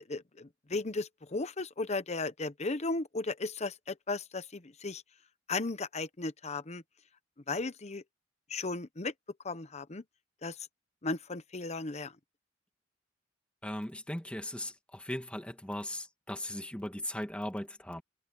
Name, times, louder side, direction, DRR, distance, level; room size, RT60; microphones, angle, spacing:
voice 1, 0.0-5.0 5.5-6.8 7.5-8.0 8.5-9.1 9.4-10.0 10.4-10.6 11.0-12.1, left 3 dB, 35° left, 1.0 m, -35 dB
voice 2, 13.6-18.0, left 1 dB, 5° left, 2.1 m, -38 dB
head